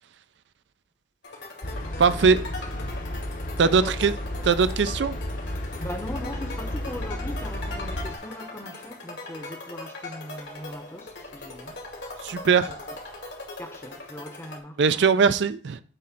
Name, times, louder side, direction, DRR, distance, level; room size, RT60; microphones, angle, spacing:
sound 1, 1.2-14.6, left 2 dB, 80° left, 2.1 m, -40 dB
sound 2, 1.6-8.2, left 1 dB, 45° left, 0.8 m, -33 dB
voice 1, 2.0-2.4 3.6-4.1 4.4-5.2 12.2-12.7 14.8-15.8, right 5 dB, 75° right, 0.4 m, -20 dB
voice 2, 3.6-4.0 5.8-11.8 12.7-12.9 13.6-15.0, left 1 dB, 15° left, 0.7 m, -39 dB
7.7 x 3.2 x 5.8 m
head